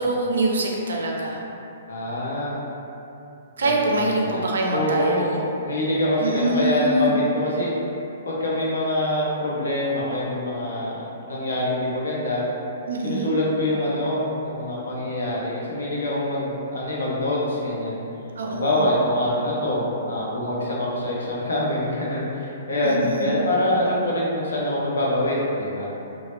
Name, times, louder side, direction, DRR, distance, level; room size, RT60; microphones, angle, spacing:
voice 1, 0.0-1.4 3.6-5.4 6.2-7.2 12.9-13.3 18.4-18.8 22.8-23.4, right 2 dB, 80° right, -1 dB, 0.4 m, -24 dB
voice 2, 1.9-2.5 3.6-4.4 4.7-5.4 5.6-7.7 8.2-12.4 13.0-18.0 18.4-25.9, left 1 dB, 90° left, -5 dB, 0.6 m, -25 dB
2.1 x 2.0 x 3.0 m, 2.8 s
hypercardioid pair, 145°, 0 cm